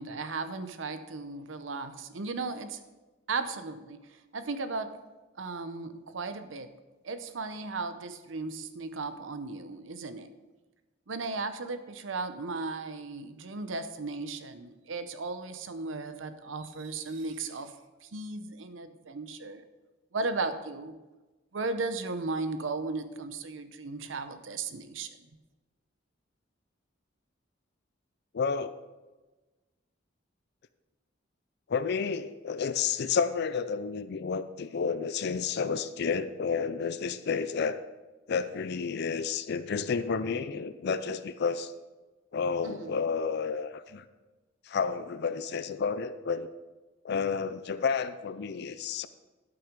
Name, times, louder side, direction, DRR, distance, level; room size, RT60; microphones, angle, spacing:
voice 1, 0.0-2.8 3.3-4.9 5.4-6.7 7.0-10.3 11.1-17.7 18.0-19.6 20.1-21.0 21.5-25.1 42.6-43.0, right 3 dB, 80° right, 10 dB, 0.7 m, -36 dB
voice 2, 28.3-28.8 31.7-37.8 38.3-41.7 42.3-44.0 44.7-46.5 47.0-49.1, left 5 dB, 60° left, 13 dB, 0.5 m, -31 dB
12.5 x 5.9 x 5.2 m, 1.2 s
head